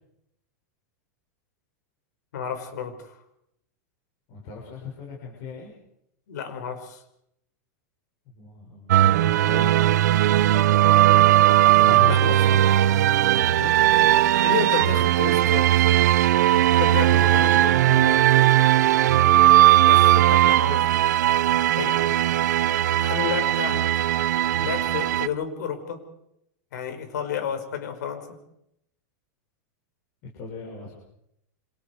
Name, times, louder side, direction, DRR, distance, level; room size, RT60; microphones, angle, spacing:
voice 1, 2.3-3.2 6.3-7.0 12.0-12.6 14.0-14.1 14.4-15.9 16.8-17.8 19.8-20.8 21.8-22.0 23.0-23.8 24.6-26.0 26.7-28.3, left 7 dB, 80° left, 7 dB, 5.5 m, -31 dB
voice 2, 4.3-5.7 8.2-9.9 11.2-11.4 11.8-12.4 13.4-14.2 17.9-19.4 30.2-30.9, left 4 dB, 40° left, -2 dB, 6.2 m, -38 dB
sound 1, 8.9-25.3, right 13 dB, 75° right, 0.8 m, -18 dB
28.0 x 26.5 x 4.8 m, 0.77 s
supercardioid pair, 170°, 9 cm